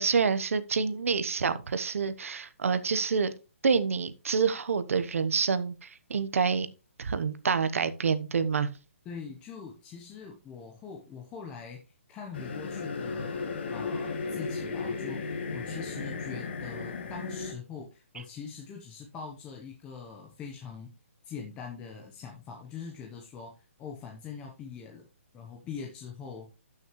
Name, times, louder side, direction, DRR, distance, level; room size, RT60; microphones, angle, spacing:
voice 1, 0.0-3.3 3.6-6.7 7.0-8.7, right 5 dB, 70° right, 1.1 m, -27 dB
voice 2, 9.0-11.8 12.1-20.9 21.2-25.1 25.3-26.5, left 6 dB, 10° left, 1.0 m, -43 dB
sound 1, 12.3-17.5, left 4 dB, 45° left, 1.9 m, -35 dB
13.0 x 6.4 x 3.1 m
hypercardioid pair, 170°, 8 cm